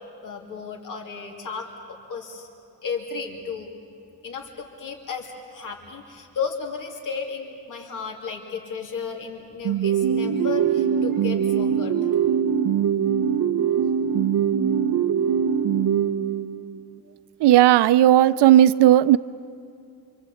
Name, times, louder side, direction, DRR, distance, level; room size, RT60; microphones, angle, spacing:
voice 1, 0.2-2.5 2.8-3.7 4.2-11.9, left 5 dB, 50° left, 1 dB, 3.0 m, -34 dB
sound 1, 9.6-16.8, right 8 dB, 60° right, 0.9 m, -22 dB
voice 2, 17.4-19.2, right 13 dB, 85° right, 15 dB, 0.6 m, -15 dB
27.0 x 25.5 x 8.5 m, 2.6 s
wide cardioid pair, 165°, 40 cm